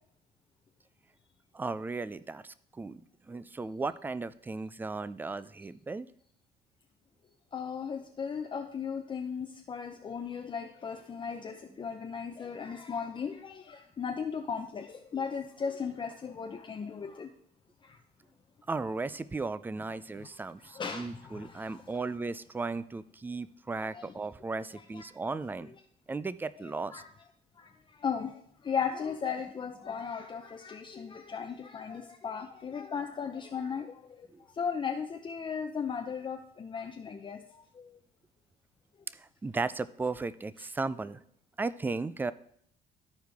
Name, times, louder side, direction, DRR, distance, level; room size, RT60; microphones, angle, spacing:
voice 1, 1.5-3.0 3.3-6.1 18.7-25.7 26.1-27.0 34.3-34.4 39.2-41.2 41.6-42.3, right 3 dB, 10° right, 16 dB, 0.3 m, -36 dB
voice 2, 7.5-17.3 17.8-18.0 20.2-20.3 20.6-22.0 23.7-24.2 24.7-25.7 26.6-27.1 27.6-38.0 40.6-40.7, left 6 dB, 30° left, 3 dB, 0.6 m, -37 dB
13.5 x 4.7 x 3.5 m, 0.68 s
cardioid pair, 110°, 17 cm